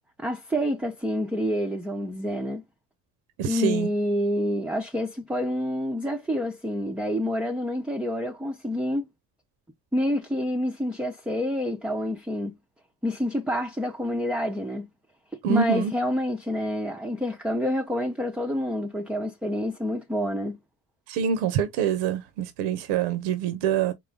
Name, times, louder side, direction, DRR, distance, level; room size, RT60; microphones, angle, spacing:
voice 1, 0.2-2.6 3.4-9.0 9.9-12.6 13.0-14.9 15.5-20.6, left 1 dB, ahead, 0.5 m, -28 dB
voice 2, 3.4-3.9 15.4-15.9 21.1-23.9, right 8 dB, 75° right, 0.7 m, -25 dB
3.8 x 2.1 x 3.3 m
hypercardioid pair, 60°, 47 cm